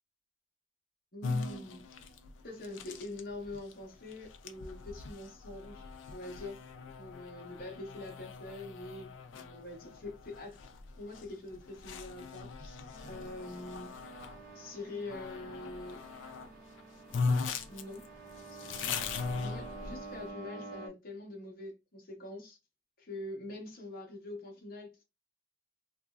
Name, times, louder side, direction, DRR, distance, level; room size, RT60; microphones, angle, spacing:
voice 1, 1.1-1.9 2.4-6.6 7.0-10.6 10.9-13.9 14.5-16.0 17.7-18.1 19.4-22.6 23.0-25.0, left 2 dB, 45° left, 0.9 m, -44 dB
sound 1, 1.2-14.4 15.1-16.5 16.8-16.9 17.1-20.2, left 4 dB, 65° left, 0.4 m, -39 dB
sound 2, 12.9-20.9, right 3 dB, 45° right, 1.0 m, -49 dB
2.8 x 2.5 x 2.3 m
head